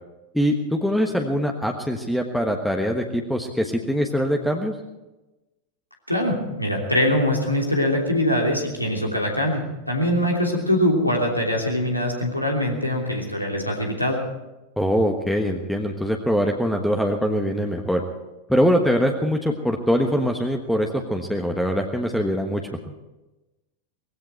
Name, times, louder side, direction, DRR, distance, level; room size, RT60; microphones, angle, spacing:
voice 1, 0.3-4.7 14.8-18.0 18.5-22.9, equal, ahead, 3 dB, 1.3 m, -23 dB
voice 2, 6.1-14.2, left 1 dB, 90° left, -1 dB, 3.0 m, -23 dB
19.0 x 16.0 x 4.5 m, 1.0 s
figure-of-eight pair, 90°, 0 cm